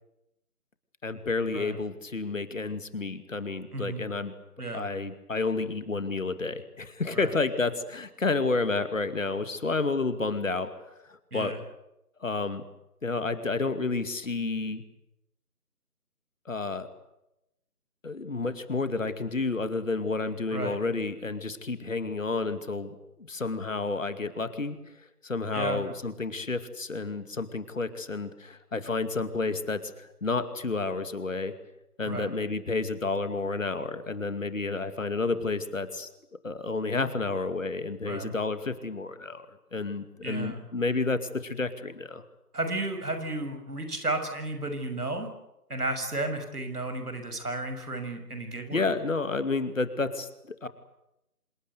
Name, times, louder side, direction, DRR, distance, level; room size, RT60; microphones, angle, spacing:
voice 1, 1.0-4.3 4.7-10.7 11.1-11.6 12.2-12.6 13.0-14.8 16.5-16.9 18.0-24.8 25.2-31.5 32.0-36.1 36.4-39.5 39.7-42.2 48.7-50.7, left 3 dB, 55° left, 11 dB, 2.5 m, -30 dB
voice 2, 3.7-4.0 4.6-4.8 7.1-7.3 11.3-11.6 20.5-20.8 25.5-25.8 32.0-32.3 38.1-38.3 40.2-40.6 42.5-45.3 45.7-48.9, right 2 dB, 75° right, 7 dB, 6.5 m, -33 dB
26.5 x 20.5 x 8.3 m, 0.87 s
figure-of-eight pair, 160°, 46 cm